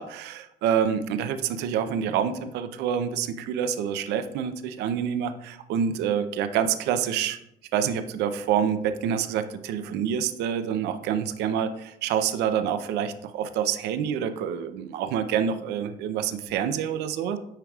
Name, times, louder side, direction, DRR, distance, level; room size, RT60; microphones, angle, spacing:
voice 1, 0.0-7.4 7.7-17.4, right 8 dB, 85° right, 10 dB, 0.5 m, -27 dB
9.0 x 4.7 x 2.3 m, 0.78 s
cardioid pair, 110°, 17 cm